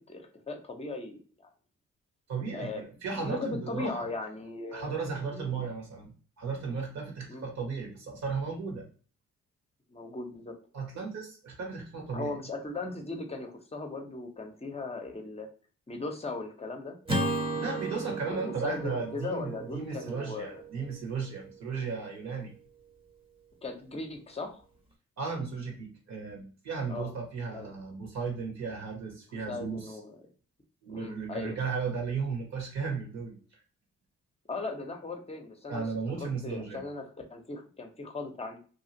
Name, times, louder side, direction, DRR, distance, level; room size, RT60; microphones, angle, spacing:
voice 1, 0.1-1.5 2.5-2.8 3.2-5.7 7.3-7.4 9.9-10.5 12.1-15.5 15.9-17.0 18.2-20.6 23.6-24.6 26.9-27.1 27.5-27.7 29.5-30.2 30.9-31.6 34.5-35.9 36.2-37.0 37.3-38.6, left 3 dB, 20° left, 5 dB, 0.7 m, -38 dB
voice 2, 2.3-4.1 4.7-8.9 10.7-12.3 17.5-22.5 25.2-30.0 30.8-33.4 35.7-36.8, right 5 dB, 65° right, 1 dB, 1.4 m, -35 dB
Acoustic guitar / Strum, 17.1-21.5, right 2 dB, 20° right, 0.9 m, -35 dB
2.9 x 2.4 x 2.7 m, 0.40 s
cardioid pair, 90°, 30 cm